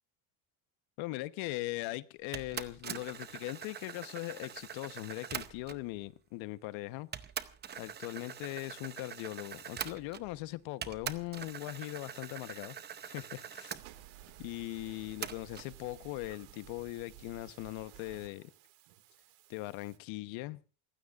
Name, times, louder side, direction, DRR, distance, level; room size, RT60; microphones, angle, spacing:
voice 1, 1.0-7.1 7.8-12.8 13.0-13.8 14.4-18.5 19.5-20.6, left 19 dB, 70° left, 1.2 m, -40 dB
sound 1, 2.3-5.9 6.6-6.7 7.1-10.4 10.8-13.8 15.2-15.7, right 8 dB, 20° right, 0.7 m, -43 dB
sound 2, 13.7-20.0, right 13 dB, 80° right, 2.3 m, -55 dB
28.5 x 15.5 x 2.5 m
cardioid pair, 175°, 48 cm